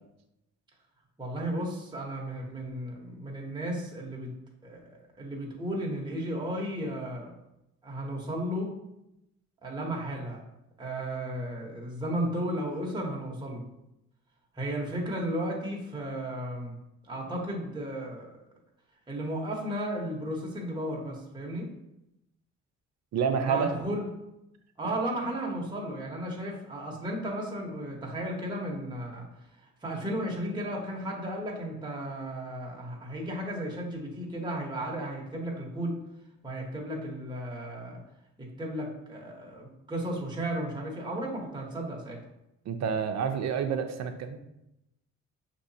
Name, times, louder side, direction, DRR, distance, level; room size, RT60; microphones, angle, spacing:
voice 1, 1.2-4.3 4.6-7.3 7.8-8.7 9.6-10.4 10.8-13.6 14.5-16.8 17.0-18.3 19.1-21.7 23.5-24.1 24.8-29.3 29.6-36.0 36.4-38.0 38.4-42.2, right 1 dB, 15° right, -2 dB, 1.1 m, -34 dB
voice 2, 23.1-23.7 42.7-44.4, right 6 dB, 60° right, 7 dB, 0.6 m, -28 dB
6.1 x 2.9 x 2.8 m, 0.87 s
cardioid pair, 90°, 30 cm